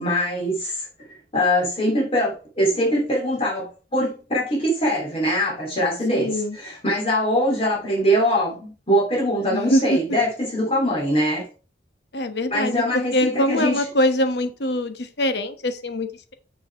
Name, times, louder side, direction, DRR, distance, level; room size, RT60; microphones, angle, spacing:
voice 1, 0.0-11.5 12.5-13.8, equal, 30° left, -3 dB, 2.9 m, -23 dB
voice 2, 6.1-6.6 9.5-10.0 12.1-16.3, left 1 dB, 65° left, 9 dB, 1.1 m, -23 dB
7.0 x 5.7 x 4.7 m, 0.37 s
head